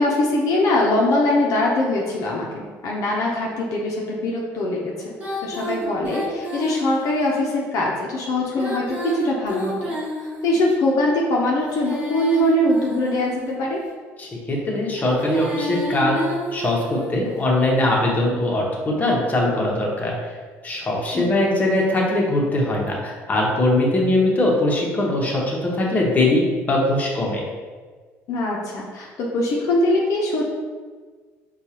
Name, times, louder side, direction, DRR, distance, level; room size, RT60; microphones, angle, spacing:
voice 1, 0.0-5.1 5.4-8.9 9.1-9.9 10.2-13.8 21.1-21.3 28.3-30.5, left 1 dB, 65° left, -2 dB, 0.6 m, -22 dB
Female singing, 5.2-7.3 8.4-10.7 11.5-13.7 14.9-17.2, equal, 25° right, 1.3 m, -30 dB
voice 2, 14.2-16.2 16.5-20.1 20.6-27.4, left 1 dB, 25° left, -2 dB, 0.9 m, -21 dB
4.5 x 2.3 x 2.9 m, 1.5 s
supercardioid pair, 85°, 6 cm